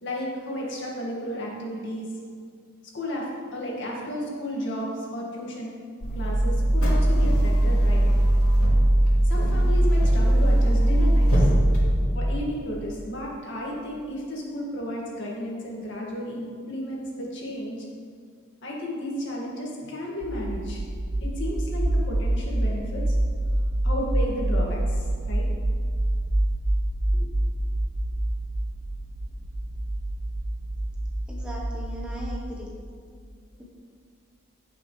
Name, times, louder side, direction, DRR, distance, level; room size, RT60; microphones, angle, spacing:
voice 1, 0.0-2.1 2.9-5.7 6.1-8.1 9.2-11.5 12.1-17.9 18.6-20.8 21.2-23.2 23.8-25.5 27.1-27.3, equal, 55° left, -3 dB, 2.0 m, -33 dB
sound 1, 6.0-11.9, right 1 dB, 90° left, 2.5 m, -19 dB
sound 2, 20.2-32.4, right 1 dB, 50° right, 0.7 m, -27 dB
voice 2, 31.3-32.8, equal, 5° right, -4 dB, 1.1 m, -38 dB
16.0 x 6.1 x 3.3 m, 2.1 s
head